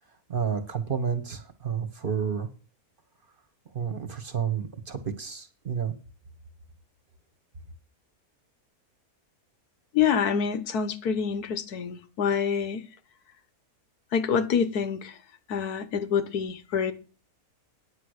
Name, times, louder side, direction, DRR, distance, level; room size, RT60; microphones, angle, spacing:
voice 1, 0.3-2.5 3.7-5.9, right 7 dB, 40° right, 1.2 m, -30 dB
voice 2, 9.9-12.8 14.1-15.1 15.5-16.9, left 7 dB, 90° left, 1.5 m, -26 dB
9.6 x 6.6 x 6.4 m
omnidirectional pair, 1.6 m